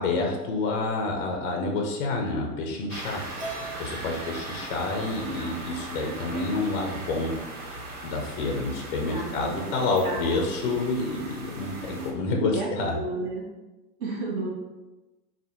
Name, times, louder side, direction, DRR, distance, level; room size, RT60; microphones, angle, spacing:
voice 1, 0.0-3.3 3.8-7.3 7.7-7.8 8.0-13.0, left 3 dB, 35° left, 1 dB, 0.5 m, -28 dB
sound 1, 2.9-12.1, right 2 dB, 90° right, 1.2 m, -39 dB
Keyboard (musical), 3.4-5.7, right 3 dB, 20° right, 0.5 m, -43 dB
voice 2, 9.1-10.7 12.5-13.4 14.0-14.5, right 2 dB, 40° right, -4 dB, 1.2 m, -33 dB
3.4 x 2.4 x 4.3 m, 1.1 s
supercardioid pair, 155°, 44 cm